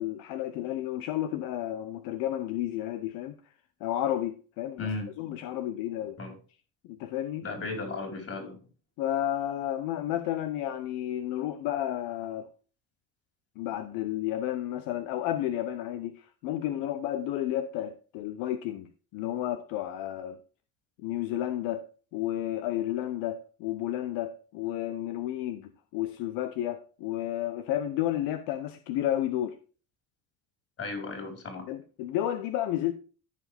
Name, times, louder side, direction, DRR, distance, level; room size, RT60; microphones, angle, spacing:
voice 1, 0.0-3.4 3.8-6.2 6.9-7.4 9.0-12.5 13.6-20.4 21.0-21.8 22.1-29.6 31.7-32.9, left 12 dB, 80° left, 0.8 m, -32 dB
voice 2, 4.8-5.1 6.2-6.4 7.4-8.6 30.8-31.7, left 3 dB, 45° left, 4.5 m, -35 dB
14.0 x 5.0 x 3.5 m
supercardioid pair, 95°, 34 cm